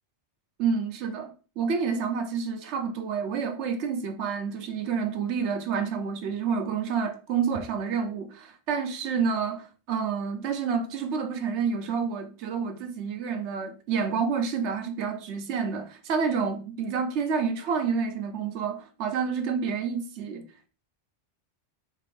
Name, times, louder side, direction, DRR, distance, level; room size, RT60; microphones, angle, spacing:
voice 1, 0.6-20.4, right 6 dB, 75° right, 0.9 m, -29 dB
4.4 x 2.5 x 3.4 m
omnidirectional pair, 1.2 m